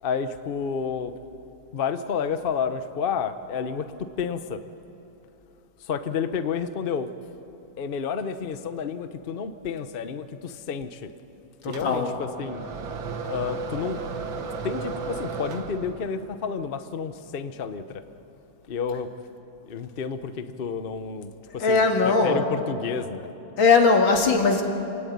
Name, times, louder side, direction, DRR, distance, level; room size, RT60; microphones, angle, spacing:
voice 1, 0.0-1.1 1.7-4.6 5.8-7.1 7.8-11.1 11.7-12.6 13.3-14.0 14.6-18.0 18.7-19.1 19.6-21.8 22.2-23.3, left 6 dB, 40° left, 10 dB, 0.8 m, -30 dB
voice 2, 11.6-12.1 21.6-22.5 23.6-24.6, left 4 dB, 90° left, 3 dB, 2.9 m, -20 dB
sound 1, 11.7-16.2, right 4 dB, 85° right, 2.2 m, -34 dB
27.5 x 18.0 x 9.4 m, 2.9 s
omnidirectional pair, 2.1 m